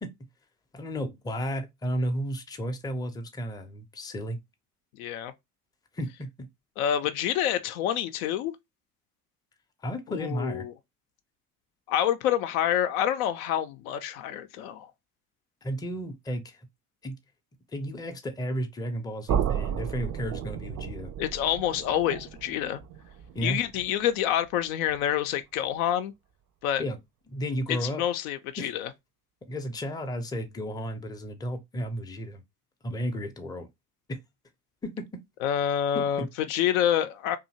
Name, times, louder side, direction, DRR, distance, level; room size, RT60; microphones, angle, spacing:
voice 1, 0.7-4.4 5.9-6.5 9.8-10.7 15.6-16.7 17.0-17.2 17.7-21.1 23.3-23.6 26.8-27.0 27.3-28.0 28.6-28.7 29.5-32.4 32.8-33.7 34.1-34.2 34.8-35.1 35.9-36.3, equal, 10° left, 0.5 m, -33 dB
voice 2, 5.0-5.3 6.8-8.5 10.1-10.7 11.9-14.9 21.2-22.8 23.4-26.1 26.6-26.8 27.7-28.9 35.4-37.4, left 10 dB, 70° left, 0.5 m, -27 dB
sound 1, 19.3-25.2, right 8 dB, 40° right, 0.5 m, -34 dB
2.7 x 2.4 x 2.7 m
hypercardioid pair, 60°, 45 cm